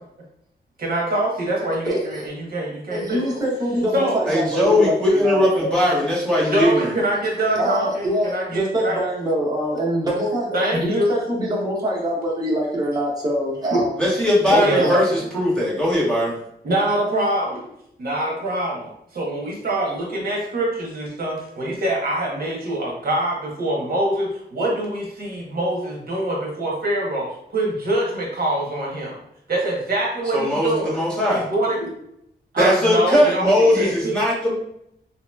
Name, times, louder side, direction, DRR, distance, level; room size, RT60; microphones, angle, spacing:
voice 1, 0.8-3.2 3.9-4.3 6.5-9.0 10.5-11.1 13.7-13.8 14.6-14.9 16.6-17.7 18.0-29.2 29.5-31.0 31.3-31.8 32.5-34.2, right 1 dB, 55° right, -2 dB, 0.9 m, -24 dB
voice 2, 1.8-2.3 2.9-5.9 7.5-13.9 14.5-15.3, equal, 20° right, -4 dB, 0.8 m, -24 dB
voice 3, 4.3-6.9 14.0-16.4 30.3-31.5 32.6-34.5, left 1 dB, 5° left, -8 dB, 1.2 m, -19 dB
2.9 x 2.8 x 2.2 m, 0.74 s
wide cardioid pair, 135°, 18 cm